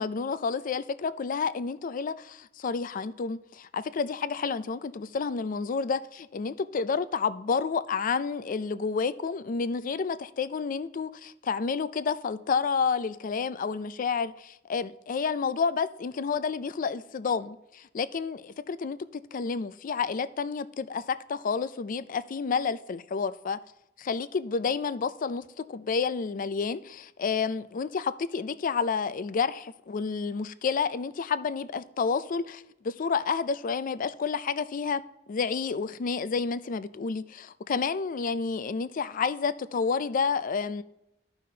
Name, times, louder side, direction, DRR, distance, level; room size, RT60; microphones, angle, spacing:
voice 1, 0.0-23.6 24.0-35.0 35.3-40.8, left 5 dB, 45° left, 0.4 m, -30 dB
14.0 x 5.6 x 2.8 m
head